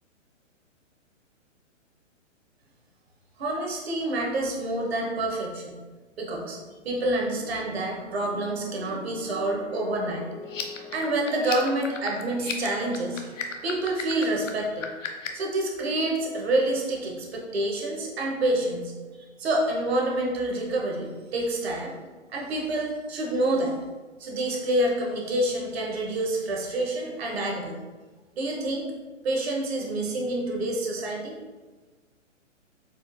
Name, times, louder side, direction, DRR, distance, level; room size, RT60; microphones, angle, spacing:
voice 1, 3.4-5.8 6.2-6.6 6.8-10.3 10.9-13.3 13.6-14.9 15.3-21.9 22.3-23.7 24.2-27.8 28.4-28.9 29.2-31.4, right 1 dB, 55° right, -1 dB, 0.9 m, -28 dB
sound 1, 7.2-15.8 16.7-17.1, right 1 dB, 5° right, 0.4 m, -46 dB
sound 2, 10.4-15.5, left 7 dB, 80° left, 0.6 m, -35 dB
4.3 x 2.4 x 2.5 m, 1.3 s
figure-of-eight pair, 125°, 38 cm